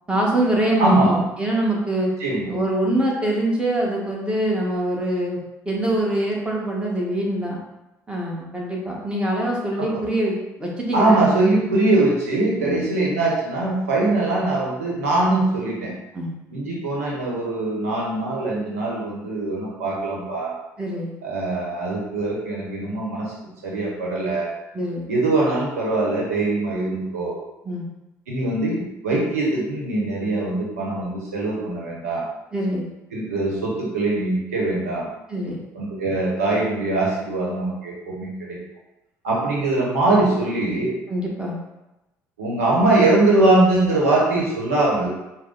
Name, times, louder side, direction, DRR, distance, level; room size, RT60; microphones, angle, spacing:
voice 1, 0.1-2.1 2.5-5.4 5.6-7.6 8.1-11.2 12.6-12.8 16.1-16.3 20.8-21.1 24.7-25.0 27.6-27.9 32.5-32.8 35.3-35.6 41.1-41.6, right 1 dB, 15° right, -3 dB, 1.4 m, -24 dB
voice 2, 0.8-1.1 2.2-2.5 9.8-10.0 10.9-15.9 16.5-20.5 21.2-23.3 23.6-24.5 25.1-27.3 28.3-32.2 33.1-35.1 35.7-38.6 39.2-40.9 42.4-45.1, right 2 dB, 90° right, -3 dB, 1.0 m, -22 dB
4.9 x 2.2 x 4.0 m, 0.96 s
hypercardioid pair, 65°, 8 cm